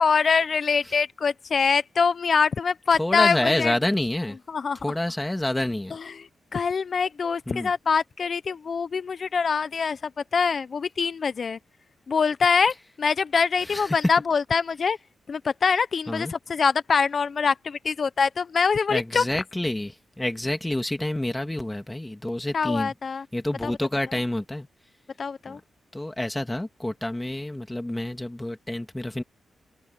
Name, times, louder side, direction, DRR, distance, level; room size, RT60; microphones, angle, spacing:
voice 1, 0.0-3.7 4.5-4.8 5.9-11.6 12.1-15.0 15.3-19.2 22.5-23.2 23.6-23.7 25.2-25.6, left 5 dB, 55° left, 0.9 m, -24 dB
voice 2, 3.0-4.4 4.8-6.0 7.5-7.7 13.7-14.0 16.1-16.3 18.9-22.9 23.3-24.7 25.5-25.6 25.9-29.2, left 1 dB, 15° left, 2.8 m, -28 dB
open air
cardioid pair, 65°, 0 cm